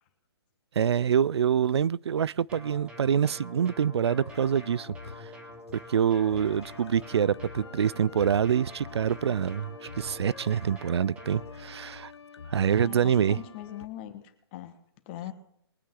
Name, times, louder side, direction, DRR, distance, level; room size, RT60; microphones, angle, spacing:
voice 1, 0.8-5.3 5.9-12.1 12.5-13.4, right 8 dB, 80° right, 0.4 m, -26 dB
sound 1, 2.5-11.5, left 1 dB, 10° right, 1.5 m, -46 dB
sound 2, 4.3-13.9, left 5 dB, 85° left, 1.0 m, -47 dB
voice 2, 12.7-14.2 14.5-14.7 15.1-15.3, left 12 dB, 25° left, 1.5 m, -40 dB
22.5 x 8.5 x 3.8 m
hypercardioid pair, 165°, 14 cm